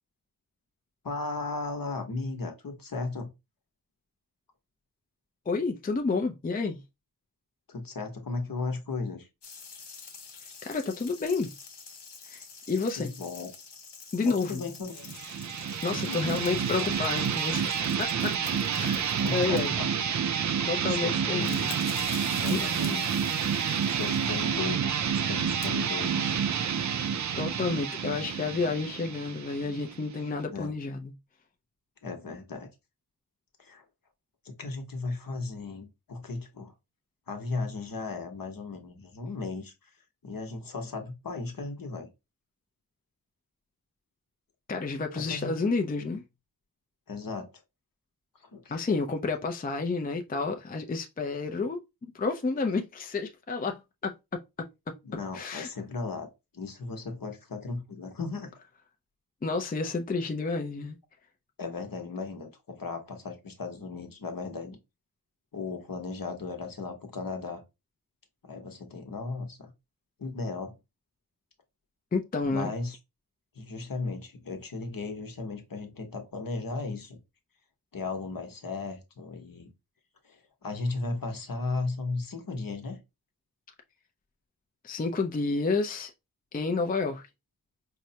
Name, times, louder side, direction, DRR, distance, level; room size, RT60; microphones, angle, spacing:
voice 1, 1.0-3.3 7.7-9.3 13.0-13.5 14.2-15.1 15.9-16.4 19.2-19.9 20.9-21.5 22.4-23.1 24.0-24.9 25.3-26.3 30.5-30.7 32.0-32.7 33.6-33.8 34.4-36.7 37.3-39.7 40.2-42.1 45.1-45.5 47.1-47.5 48.5-48.8 55.0-58.5 61.6-64.8 65.5-67.6 68.4-69.7 70.2-70.8 72.4-73.0 73.6-77.2 77.9-79.7 80.3-83.0, left 3 dB, 55° left, 1.0 m, -36 dB
voice 2, 5.5-6.8 10.6-11.5 12.2-13.1 14.1-14.7 15.8-18.4 18.7-19.8 20.6-21.7 22.5-22.6 27.4-31.1 44.7-46.2 48.7-54.1 54.6-54.7 55.3-55.7 59.4-61.0 72.1-72.7 84.8-86.1 86.5-87.2, left 4 dB, 20° left, 0.4 m, -30 dB
sound 1, 9.4-20.0 21.0-21.1 21.3-24.5 25.4-25.7, left 5 dB, 80° left, 0.9 m, -46 dB
sound 2, 15.0-30.4, right 7 dB, 45° right, 0.4 m, -29 dB
4.7 x 2.1 x 2.7 m
wide cardioid pair, 65°, 41 cm